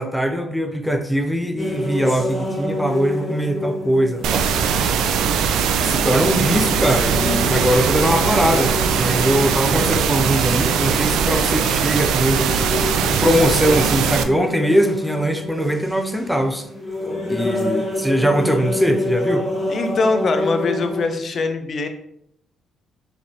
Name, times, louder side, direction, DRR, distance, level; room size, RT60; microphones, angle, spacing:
voice 1, 0.0-4.5 4.8-4.9 5.8-12.4 13.0-16.7 17.3-19.5, equal, ahead, 6 dB, 0.5 m, -21 dB
sound 1, 1.6-21.0, left 1 dB, 20° left, 1.4 m, -28 dB
sound 2, 4.2-14.2, right 7 dB, 85° right, 0.3 m, -20 dB
voice 2, 19.7-21.9, left 3 dB, 50° left, 7 dB, 0.5 m, -22 dB
4.9 x 3.3 x 2.8 m, 0.75 s
cardioid pair, 90°, 0 cm